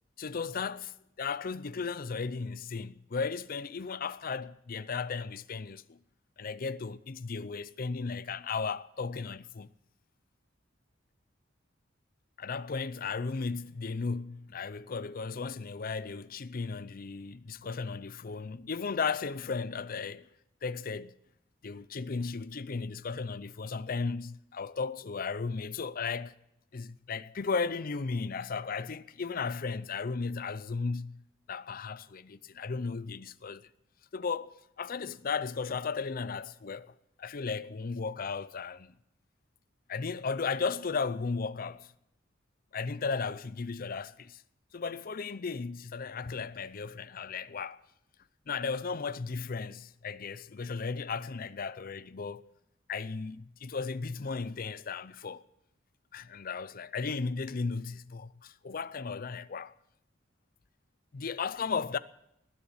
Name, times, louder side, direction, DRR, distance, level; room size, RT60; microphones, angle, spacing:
voice 1, 0.2-6.0 6.4-9.7 12.4-20.3 20.6-21.1 21.6-26.3 26.7-31.2 31.5-33.6 34.1-39.0 39.9-41.9 42.7-44.4 44.7-47.8 48.5-52.4 52.9-55.4 56.1-59.7 61.1-62.0, left 5 dB, 45° left, 0.5 m, -35 dB
19.5 x 7.1 x 9.6 m
head